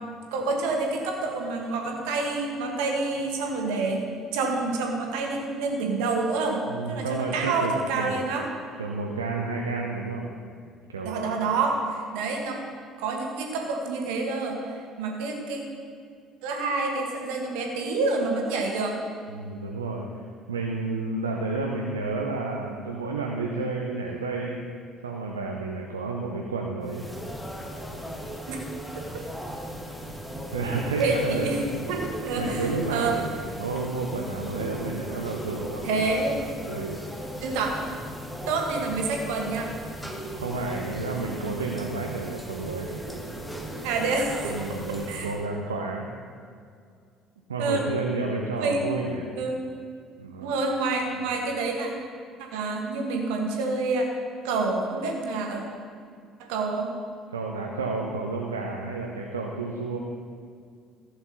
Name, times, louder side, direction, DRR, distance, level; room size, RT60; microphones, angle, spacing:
voice 1, 0.3-4.1 4.3-6.6 6.9-8.4 11.0-12.6 13.0-15.6 16.4-19.0 28.5-28.6 28.9-29.0 31.0-31.6 31.9-33.1 35.8-36.4 37.4-37.7 38.4-39.7 43.6-44.6 45.1-45.3 47.6-47.8 48.6-48.9 49.3-49.6 50.4-51.9 52.5-54.0 54.4-55.6 56.5-56.9, right 3 dB, 65° right, 1 dB, 1.6 m, -28 dB
voice 2, 6.7-8.2 8.8-10.3 10.9-11.4 19.3-20.2 20.5-24.6 25.0-27.1 30.5-32.0 32.3-33.3 33.6-36.0 36.7-37.0 40.4-43.0 44.4-46.1 47.5-49.3 50.2-50.7 51.2-51.3 57.3-60.0, right 3 dB, 80° right, 0 dB, 0.7 m, -31 dB
sound 1, 26.8-45.5, equal, 5° left, 1.6 m, -37 dB
14.5 x 7.9 x 4.1 m, 2.2 s
figure-of-eight pair, 55°, 0 cm